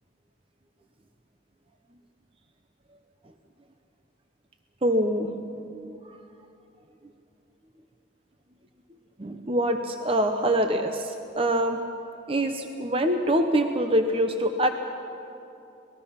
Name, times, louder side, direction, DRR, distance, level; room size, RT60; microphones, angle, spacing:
voice 1, 4.8-6.2 9.2-11.8 12.3-14.7, right 1 dB, 30° right, 6 dB, 0.8 m, -25 dB
26.0 x 19.5 x 5.8 m, 2.8 s
head